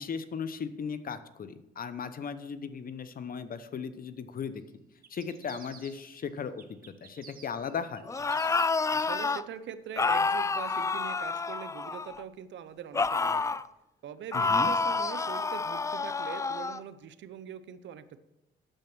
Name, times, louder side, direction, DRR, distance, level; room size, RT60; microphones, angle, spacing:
voice 1, 0.0-4.6 5.1-8.0 14.3-14.7, left 6 dB, 45° left, 12 dB, 0.8 m, -37 dB
sound 1, 5.0-6.2 6.6-8.9, right 6 dB, 45° right, 1.2 m, -53 dB
sound 2, 8.1-9.4 10.0-12.2 12.9-13.7 14.3-16.8, left 4 dB, 15° left, 0.3 m, -29 dB
voice 2, 8.9-13.6 14.0-18.2, right 9 dB, 70° right, 13 dB, 0.7 m, -43 dB
9.0 x 6.7 x 6.1 m, 0.91 s
cardioid pair, 90°, 20 cm